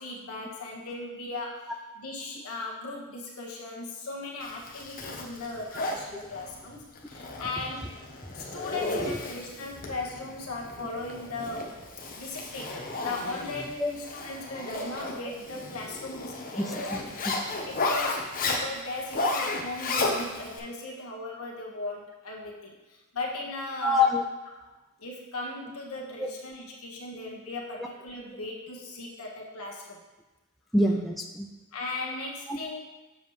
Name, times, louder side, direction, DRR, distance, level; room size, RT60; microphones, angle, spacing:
voice 1, 0.0-7.9 8.3-11.8 12.2-16.6 17.7-24.1 24.6-24.7 25.0-30.0 31.7-32.8, left 2 dB, 75° left, -2 dB, 1.5 m, -37 dB
Zipper (clothing), 4.4-20.6, left 2 dB, 40° left, 0.9 m, -34 dB
voice 2, 16.6-17.4 23.8-24.2 26.2-26.3 27.8-27.9 30.7-31.5 32.5-32.6, left 2 dB, ahead, 0 dB, 0.4 m, -26 dB
7.3 x 7.1 x 3.2 m, 1.1 s
head